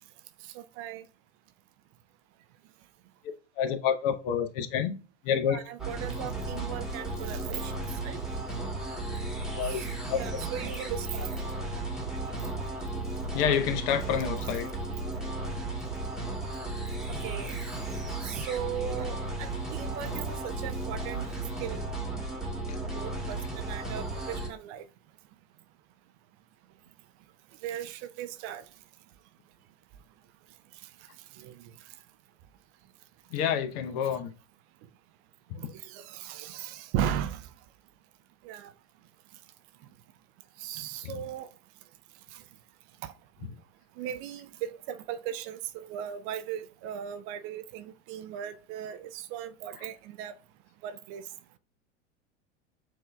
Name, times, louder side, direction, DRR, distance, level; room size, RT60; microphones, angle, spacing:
voice 1, 0.5-1.0 5.5-7.8 8.0-8.2 9.6-9.9 10.1-11.3 17.1-17.5 18.2-21.2 21.6-21.9 22.9-24.8 27.6-28.6 31.4-31.5 35.5-37.5 38.4-38.7 40.6-41.5 43.0-43.1 44.0-50.3 50.8-51.2, right 10 dB, 40° right, 0.4 m, -37 dB
voice 2, 3.6-5.0 5.2-5.6 9.5-9.8 10.1-10.2 13.3-14.7 22.7-22.8 33.3-34.3 35.6-35.7 41.0-41.2 49.8-49.9, left 8 dB, 50° left, 0.8 m, -28 dB
sound 1, 5.8-24.5, right 2 dB, ahead, 1.2 m, -34 dB
7.3 x 2.7 x 2.2 m
hypercardioid pair, 90°, 36 cm